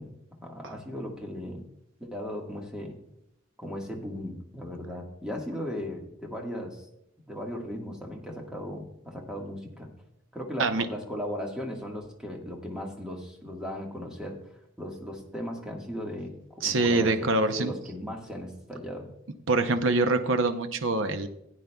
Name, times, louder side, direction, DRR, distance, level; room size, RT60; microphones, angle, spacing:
voice 1, 0.0-1.6 2.0-2.9 3.6-6.8 7.2-9.9 10.3-14.4 14.8-19.1, equal, 5° right, 0 dB, 1.5 m, -37 dB
voice 2, 16.6-17.7 19.5-21.3, right 3 dB, 75° right, 9 dB, 0.7 m, -24 dB
15.5 x 9.3 x 2.3 m, 0.77 s
head